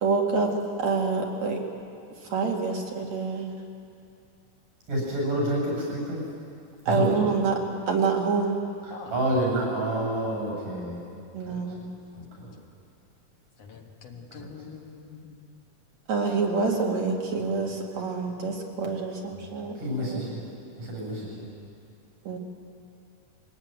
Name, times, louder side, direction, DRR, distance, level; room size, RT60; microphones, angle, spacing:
voice 1, 0.0-0.5 0.8-1.6 2.2-3.5 6.9-7.6 7.9-8.6 11.3-11.9 16.1-20.2 22.2-22.4, right 4 dB, 60° right, 0 dB, 3.2 m, -27 dB
voice 2, 4.9-6.2 6.9-7.3 9.1-11.0 11.4-11.6 12.4-12.5 14.3-14.5 19.8-20.4 20.8-21.4, right 1 dB, 80° right, -1 dB, 9.1 m, -28 dB
voice 3, 8.9-9.4 13.6-15.6 18.4-18.5, left 5 dB, 55° left, 2 dB, 2.3 m, -44 dB
22.0 x 18.0 x 9.3 m, 2.5 s
omnidirectional pair, 3.7 m